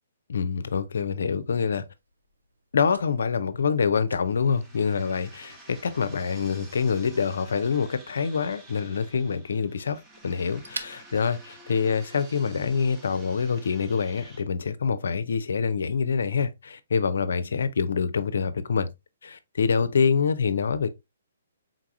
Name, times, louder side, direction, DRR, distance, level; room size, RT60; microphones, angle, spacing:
voice 1, 0.3-1.8 2.7-18.9 19.2-20.9, left 5 dB, 60° left, 0.5 m, -26 dB
Fire, 0.7-12.3, right 2 dB, 75° right, 0.6 m, -48 dB
sound 1, 4.2-14.4, right 2 dB, 15° right, 0.8 m, -50 dB
4.6 x 3.8 x 2.4 m
figure-of-eight pair, 125°, 0 cm